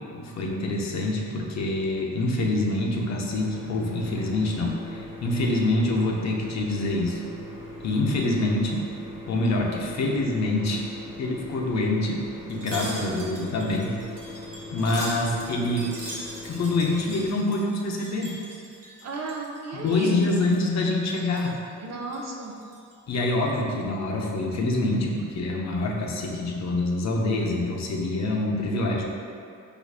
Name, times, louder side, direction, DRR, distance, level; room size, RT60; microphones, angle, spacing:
voice 1, 0.1-7.2 7.8-8.8 9.3-10.8 11.2-12.2 12.5-13.9 14.7-15.9 16.5-18.4 19.7-21.6 23.1-29.0, left 2 dB, 55° left, -1 dB, 0.6 m, -26 dB
sound 1, 3.3-17.3, left 1 dB, 20° right, 1.1 m, -40 dB
Wind chime, 12.5-19.6 19.9-20.7 21.0-21.6 22.0-22.9 23.3-23.5, right 1 dB, 80° right, 1.0 m, -42 dB
voice 2, 12.7-13.1 19.0-20.2 21.8-22.5, right 3 dB, 55° right, 0 dB, 0.5 m, -34 dB
4.7 x 2.5 x 2.4 m, 2.4 s
cardioid pair, 85°, 32 cm